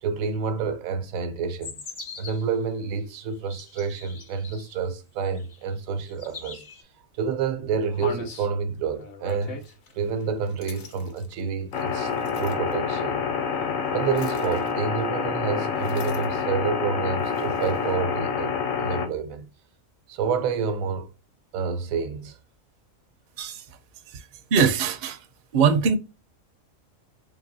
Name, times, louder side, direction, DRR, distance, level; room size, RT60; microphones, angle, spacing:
voice 1, 0.0-1.7 2.2-6.6 7.2-9.6 9.9-13.2 13.9-19.5 20.1-21.1 21.5-22.4, right 6 dB, 85° right, 1.1 m, -28 dB
sound 1, 1.6-2.6 3.2-4.8 5.3-5.8 6.1-6.8, left 5 dB, 40° left, 0.6 m, -42 dB
sound 2, 6.7-6.8 7.3-7.4 7.9-12.7 14.1-15.0 15.7-16.5 17.2-18.0, left 3 dB, 60° left, 1.1 m, -42 dB
sound 3, 11.7-19.1, left 6 dB, 80° left, 1.2 m, -27 dB
voice 2, 24.5-25.2 25.5-26.0, right 6 dB, 55° right, 0.5 m, -21 dB
3.8 x 3.3 x 2.6 m
omnidirectional pair, 1.4 m